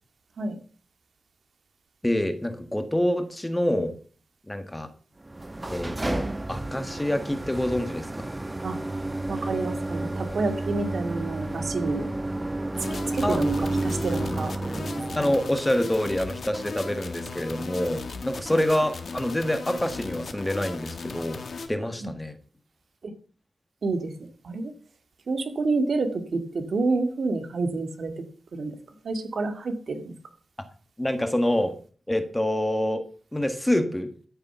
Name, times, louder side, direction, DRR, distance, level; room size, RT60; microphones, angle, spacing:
voice 1, 2.0-3.9 4.5-4.9 5.7-8.3 13.2-13.4 15.1-21.4 21.7-22.4 31.0-31.8 32.1-34.1, left 1 dB, 10° left, 8 dB, 1.5 m, -26 dB
sound 1, 5.3-15.6, right 2 dB, 15° right, 0.7 m, -31 dB
voice 2, 9.3-12.1 13.1-14.5 15.1-15.3 18.5-18.6 22.0-22.1 23.8-24.1 24.4-24.7 25.3-28.2 28.5-28.8 29.0-30.1, right 3 dB, 65° right, 7 dB, 2.0 m, -28 dB
sound 2, 12.7-21.7, left 4 dB, 60° left, 1.7 m, -37 dB
13.0 x 6.9 x 6.8 m, 0.42 s
wide cardioid pair, 135°, 0 cm